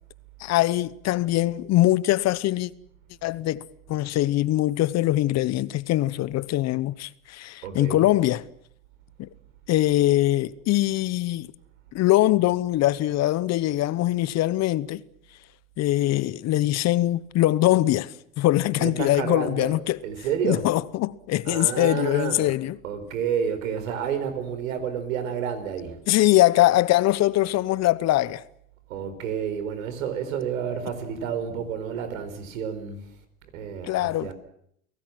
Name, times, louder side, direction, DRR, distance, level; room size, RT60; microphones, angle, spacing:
voice 1, 0.4-2.7 3.2-3.6 3.9-8.4 9.2-9.3 9.7-11.5 11.9-15.0 15.8-20.0 20.4-22.8 26.1-28.4 33.8-34.3, left 15 dB, 40° left, 1.0 m, -22 dB
voice 2, 7.6-8.1 18.8-19.7 20.0-20.6 21.4-22.5 22.8-26.0 28.9-33.1 33.5-34.3, right 8 dB, 75° right, 4.9 m, -30 dB
29.5 x 18.0 x 7.7 m
hypercardioid pair, 105°, 40 cm